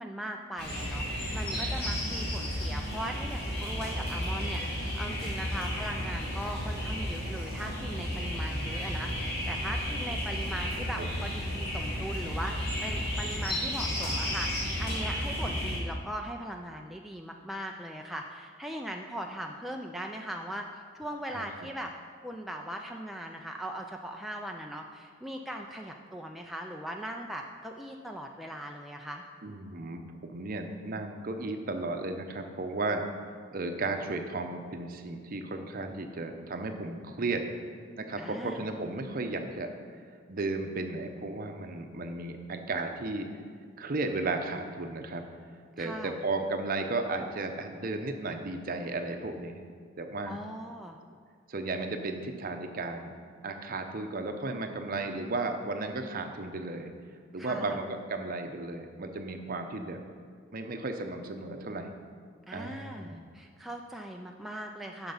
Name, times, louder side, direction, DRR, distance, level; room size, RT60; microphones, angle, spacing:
voice 1, 0.0-21.9 22.2-29.2 38.2-38.7 45.8-46.2 50.3-51.0 57.4-57.8 62.5-65.1, right 1 dB, ahead, 1 dB, 0.3 m, -39 dB
sound 1, 0.6-15.8, equal, 55° left, 2.4 m, -33 dB
voice 2, 1.5-2.0 11.0-11.2 21.3-21.7 29.4-33.0 33.5-37.4 38.0-39.7 40.3-43.3 43.8-45.2 45.8-49.6 50.0-50.4 51.5-53.2 53.4-56.9 57.3-60.0 60.5-61.9 62.5-63.2, right 2 dB, 45° right, 5 dB, 0.7 m, -34 dB
7.6 x 5.9 x 5.5 m, 2.1 s
head